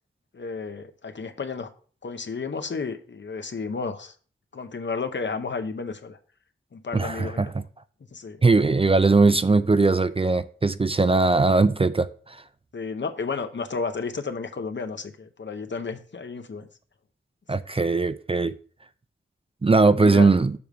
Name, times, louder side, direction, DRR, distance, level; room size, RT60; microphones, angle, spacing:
voice 1, 0.3-1.7 2.0-4.1 4.5-6.2 6.7-7.5 8.1-8.4 12.7-16.7 19.8-20.3, left 4 dB, 60° left, 0.8 m, -32 dB
voice 2, 6.9-7.6 8.4-12.4 17.5-18.5 19.6-20.5, right 3 dB, 25° right, 0.4 m, -20 dB
7.0 x 3.4 x 6.0 m
wide cardioid pair, 75°, 21 cm